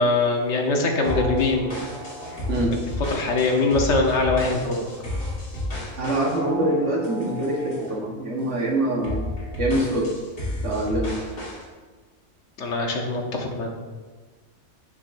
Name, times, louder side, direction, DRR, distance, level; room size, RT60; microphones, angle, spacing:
voice 1, 0.0-1.7 3.1-4.9 12.6-13.7, left 3 dB, 70° left, 2 dB, 1.2 m, -22 dB
sound 1, 1.0-8.0 8.4-8.6 9.0-11.6, left 1 dB, 90° left, 2.2 m, -32 dB
voice 2, 6.0-9.3 9.6-10.1 10.6-11.1, right 1 dB, 75° right, -1 dB, 1.5 m, -24 dB
7.3 x 5.9 x 2.5 m, 1.4 s
omnidirectional pair, 1.3 m